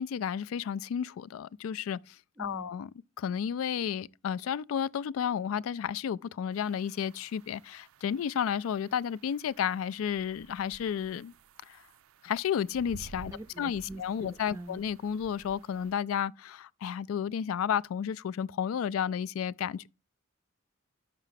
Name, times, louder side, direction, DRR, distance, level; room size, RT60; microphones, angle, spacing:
voice 1, 0.0-2.9 3.2-11.3 11.7-11.8 12.2-13.3 13.6-19.9, left 8 dB, 90° left, 0.3 m, -32 dB
voice 2, 2.4-2.7 13.3-14.8, right 1 dB, 15° right, 0.4 m, -44 dB
sound 1, 6.5-15.9, right 5 dB, 90° right, 0.4 m, -54 dB
6.0 x 5.5 x 5.7 m
head